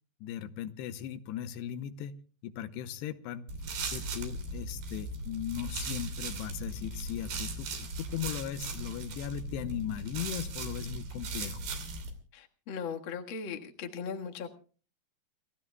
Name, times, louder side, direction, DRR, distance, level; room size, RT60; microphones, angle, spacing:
voice 1, 0.2-3.5 3.9-11.6, left 10 dB, 80° left, 11 dB, 2.9 m, -38 dB
sound 1, 3.5-12.1, right 2 dB, 75° right, 4.9 m, -38 dB
voice 2, 12.3-14.5, left 6 dB, 60° left, 3 dB, 1.2 m, -38 dB
29.5 x 15.5 x 2.3 m, 0.38 s
omnidirectional pair, 4.9 m